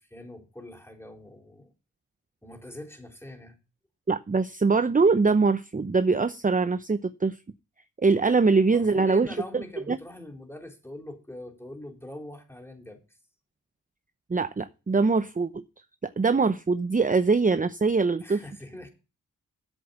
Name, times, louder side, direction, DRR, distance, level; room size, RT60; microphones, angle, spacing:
voice 1, 0.0-1.7 2.4-3.6 8.7-13.0 18.2-18.9, left 1 dB, 5° left, 4.1 m, -42 dB
voice 2, 4.1-7.4 8.0-10.0 14.3-15.6 16.0-18.4, right 4 dB, 25° right, 0.8 m, -23 dB
8.2 x 7.7 x 7.0 m
supercardioid pair, 40°, 34 cm